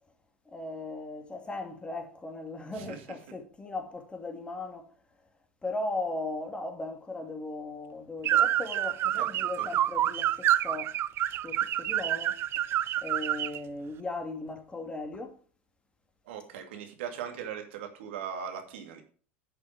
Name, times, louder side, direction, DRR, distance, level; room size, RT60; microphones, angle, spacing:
voice 1, 0.5-4.9 5.6-11.0 11.4-12.4 13.0-15.4, left 2 dB, 15° left, 2.6 m, -37 dB
sound 1, 8.2-13.6, right 12 dB, 35° right, 0.3 m, -28 dB
voice 2, 9.2-9.7 16.3-19.0, right 8 dB, 65° right, 2.5 m, -39 dB
11.0 x 6.7 x 5.0 m
figure-of-eight pair, 75°, 7 cm